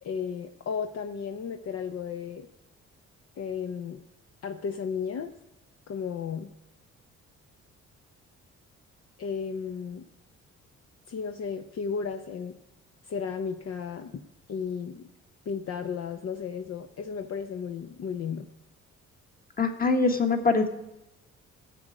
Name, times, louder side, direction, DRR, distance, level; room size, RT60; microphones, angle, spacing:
voice 1, 0.0-2.5 3.4-4.0 4.4-5.3 5.9-6.5 9.2-10.1 11.1-12.6 13.0-15.1 15.5-18.5, left 6 dB, 55° left, 6 dB, 0.8 m, -34 dB
voice 2, 19.6-20.7, left 3 dB, 30° left, 5 dB, 1.7 m, -23 dB
16.0 x 7.8 x 5.0 m, 0.91 s
cardioid pair, 90°, 30 cm